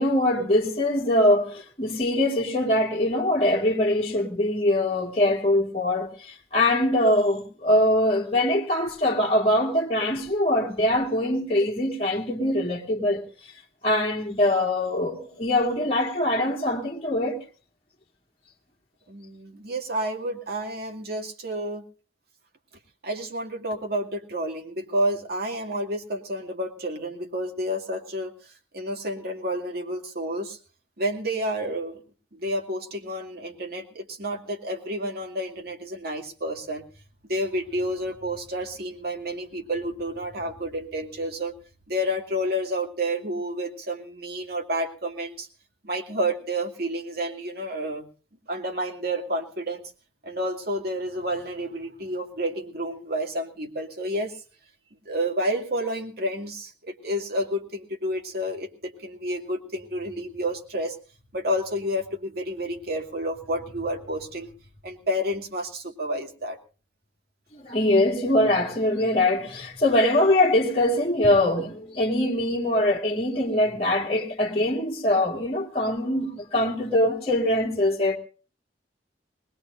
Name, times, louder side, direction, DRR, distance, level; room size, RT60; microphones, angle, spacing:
voice 1, 0.0-13.2 13.8-17.4 67.5-78.2, left 1 dB, 35° left, 2.1 m, -23 dB
voice 2, 19.1-21.8 23.0-30.6 31.0-32.0 32.3-36.8 37.3-41.5 41.9-45.5 45.8-48.1 48.5-49.8 50.2-54.4 55.0-61.0 61.3-64.5 64.8-66.6, equal, 60° right, 2.5 m, -30 dB
20.5 x 20.5 x 2.6 m
head